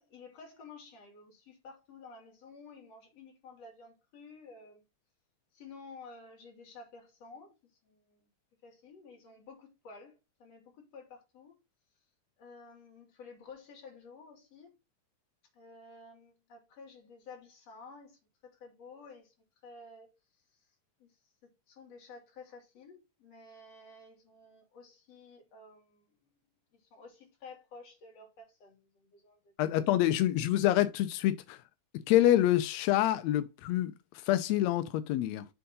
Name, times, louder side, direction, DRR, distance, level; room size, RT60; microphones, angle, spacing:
voice 1, 0.0-4.8 5.5-7.5 7.8-8.2 8.6-11.6 12.4-14.8 15.5-19.3 19.6-20.2 21.0-21.1 21.4-26.4 26.7-29.9, left 4 dB, 55° left, 3.5 m, -52 dB
voice 2, 29.6-31.6 32.1-33.9 34.2-35.5, left 13 dB, 80° left, 1.6 m, -26 dB
7.0 x 3.7 x 5.2 m
omnidirectional pair, 3.6 m